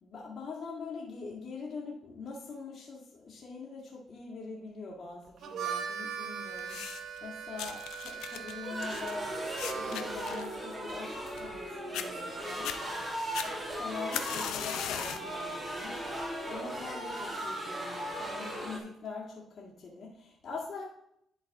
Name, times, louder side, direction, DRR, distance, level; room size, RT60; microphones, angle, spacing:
voice 1, 0.0-9.3 9.7-12.8 13.4-20.8, left 4 dB, 55° left, -5 dB, 2.0 m, -43 dB
Harmonica, 5.3-10.2, right 7 dB, 70° right, 0.8 m, -40 dB
sound 1, 6.6-7.2 7.6-11.6 11.9-12.1 12.5-12.8 13.3-15.3 15.8-16.1 16.9-17.0, left 10 dB, 90° left, 0.5 m, -39 dB
sound 2, 8.6-18.8, right 1 dB, 20° right, 2.1 m, -37 dB
11.5 x 4.0 x 3.6 m, 0.71 s
cardioid pair, 90°, 0 cm